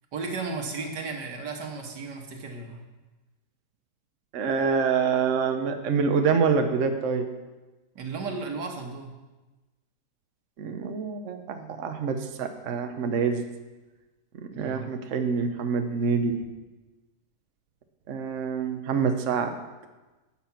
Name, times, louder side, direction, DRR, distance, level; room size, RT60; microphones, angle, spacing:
voice 1, 0.1-2.8 8.0-9.1 14.5-14.9, right 4 dB, 85° right, 3 dB, 2.0 m, -34 dB
voice 2, 4.3-7.3 10.6-13.5 14.3-16.5 18.1-19.6, right 5 dB, 55° right, 6 dB, 1.1 m, -26 dB
11.0 x 7.4 x 5.9 m, 1.2 s
omnidirectional pair, 1.8 m